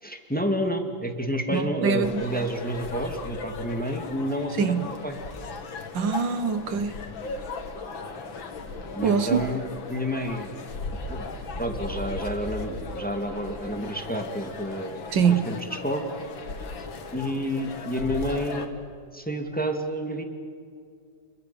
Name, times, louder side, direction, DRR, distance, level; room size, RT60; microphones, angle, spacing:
voice 1, 0.0-5.2 8.9-10.5 11.1-11.2 11.6-16.1 17.1-18.8 19.1-20.2, equal, 5° left, 4 dB, 2.0 m, -30 dB
voice 2, 1.5-2.2 4.6-4.9 5.9-7.0 9.0-9.5 15.1-15.5, right 6 dB, 70° right, 10 dB, 1.8 m, -24 dB
sound 1, 2.0-18.7, left 3 dB, 80° left, 2.5 m, -37 dB
29.0 x 22.5 x 6.9 m, 2.3 s
omnidirectional pair, 2.1 m